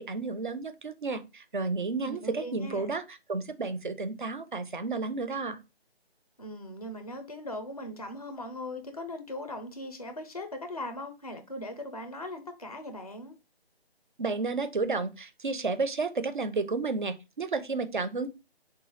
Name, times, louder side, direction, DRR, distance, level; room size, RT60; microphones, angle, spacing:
voice 1, 0.0-5.6 14.2-18.3, right 3 dB, 50° right, 0.4 m, -32 dB
voice 2, 2.0-2.9 6.4-13.4, left 1 dB, 35° left, 0.4 m, -39 dB
3.8 x 2.2 x 3.1 m
hypercardioid pair, 175°, 32 cm